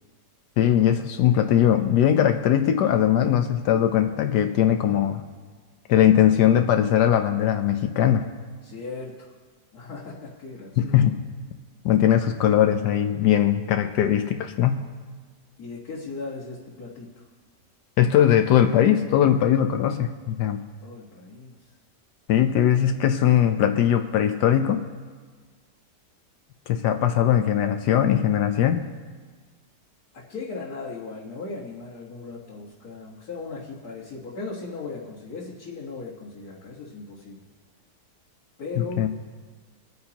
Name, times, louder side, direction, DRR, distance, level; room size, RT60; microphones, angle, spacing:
voice 1, 0.6-5.2 5.9-8.3 10.8-11.2 11.8-14.9 18.0-20.6 22.3-24.9 26.7-28.9 38.8-39.1, left 10 dB, 75° left, 6 dB, 1.2 m, -20 dB
voice 2, 8.6-9.3 9.7-11.0 15.6-17.2 20.8-21.6 30.1-37.4 38.6-39.1, left 3 dB, 60° left, -8 dB, 2.1 m, -37 dB
26.5 x 9.5 x 2.9 m, 1.5 s
omnidirectional pair, 1.8 m